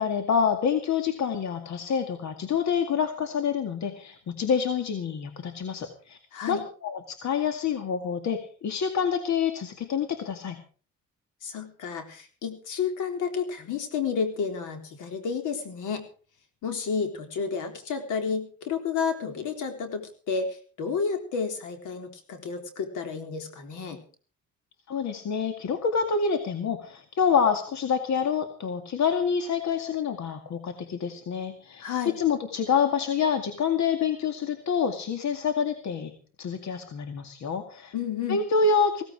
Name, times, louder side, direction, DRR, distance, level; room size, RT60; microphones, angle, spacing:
voice 1, 0.0-6.2 6.5-10.6 24.9-31.8 32.2-36.1 36.4-37.9 38.3-39.0, left 6 dB, 65° left, 7 dB, 2.2 m, -27 dB
voice 2, 11.4-16.0 16.6-24.0 31.8-32.1 37.9-38.4, left 6 dB, 85° left, 6 dB, 3.8 m, -31 dB
16.5 x 15.5 x 4.8 m, 0.40 s
cardioid pair, 90°, 30 cm